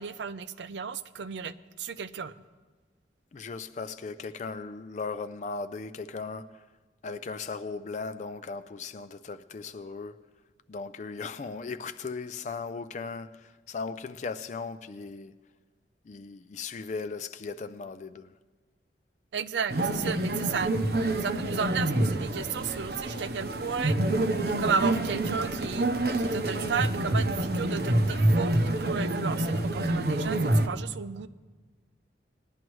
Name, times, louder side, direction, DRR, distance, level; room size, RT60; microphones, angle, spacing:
voice 1, 0.0-2.3 19.3-20.7 21.2-24.0 24.6-25.9 26.2-31.3, right 6 dB, 90° right, 0.5 m, -33 dB
voice 2, 3.3-6.6 7.0-10.2 10.7-15.3 16.1-18.3, left 4 dB, 40° left, 0.4 m, -37 dB
sound 1, 19.7-30.7, right 1 dB, 60° right, 0.8 m, -27 dB
19.0 x 11.0 x 3.1 m
head